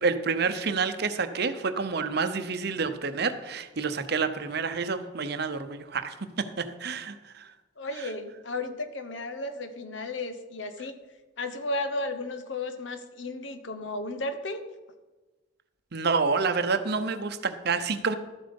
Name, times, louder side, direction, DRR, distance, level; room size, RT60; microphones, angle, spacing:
voice 1, 0.0-7.5 15.9-18.2, right 4 dB, 55° right, 10 dB, 0.7 m, -28 dB
voice 2, 7.8-10.9 11.4-14.6, left 2 dB, 70° left, 9 dB, 1.0 m, -34 dB
12.5 x 7.7 x 5.3 m, 1.2 s
head